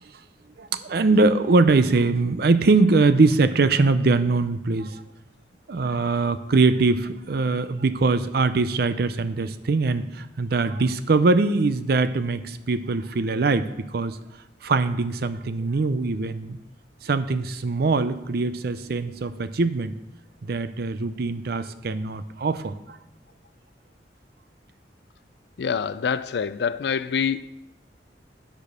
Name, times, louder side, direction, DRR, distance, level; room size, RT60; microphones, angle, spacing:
voice 1, 0.6-5.0 5.7-14.2 14.6-16.6 17.0-19.9 20.4-23.0, right 3 dB, 60° right, 0.5 m, -22 dB
voice 2, 25.6-27.5, left 6 dB, 65° left, 0.4 m, -26 dB
8.8 x 5.1 x 6.4 m
head